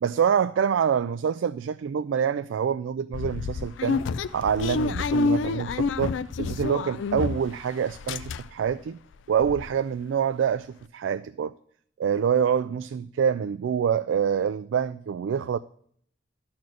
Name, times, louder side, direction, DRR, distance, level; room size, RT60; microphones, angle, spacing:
voice 1, 0.0-4.0 4.3-6.1 6.4-9.0 9.3-11.5 12.0-15.6, right 7 dB, 85° right, 0.3 m, -26 dB
sound 1, 3.1-7.6 7.9-8.7 9.1-9.2 9.4-9.6, left 4 dB, 85° left, 0.4 m, -28 dB
12.0 x 4.4 x 6.2 m
head